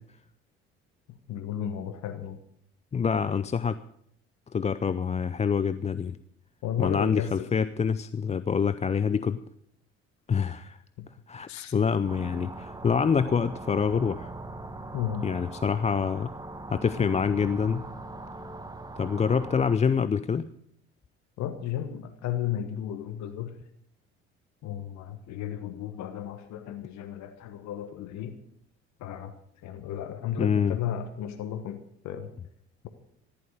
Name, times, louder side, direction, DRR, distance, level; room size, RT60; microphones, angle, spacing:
voice 1, 1.3-2.4 6.6-7.5 11.0-11.1 11.5-11.7 14.9-15.3 21.4-23.6 24.6-28.4 29.0-29.3 29.6-32.3, left 10 dB, 55° left, 9 dB, 1.4 m, -34 dB
voice 2, 2.9-3.8 4.5-6.2 6.8-9.4 10.3-10.8 11.3-14.3 15.2-16.3 16.7-17.8 19.0-20.5 30.4-30.8, left 6 dB, 20° left, 14 dB, 0.5 m, -26 dB
sound 1, 12.1-19.8, right 2 dB, 10° right, 1.3 m, -41 dB
15.0 x 11.0 x 6.5 m, 0.68 s
figure-of-eight pair, 55°, 33 cm